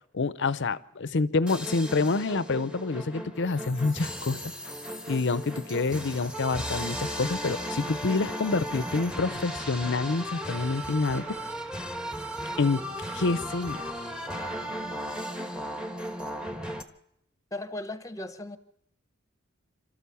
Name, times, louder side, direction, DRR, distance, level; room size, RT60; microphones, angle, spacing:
voice 1, 0.1-4.4 5.1-11.2 12.6-12.8 13.1-13.8, left 3 dB, 60° left, 16 dB, 0.7 m, -27 dB
sound 1, 1.5-16.8, equal, 5° right, 1.2 m, -36 dB
Wind instrument woodwind instrument, 10.9-14.7, right 7 dB, 60° right, 3.9 m, -47 dB
voice 2, 17.5-18.6, left 2 dB, 15° left, 12 dB, 1.0 m, -36 dB
27.5 x 13.5 x 7.0 m, 0.78 s
head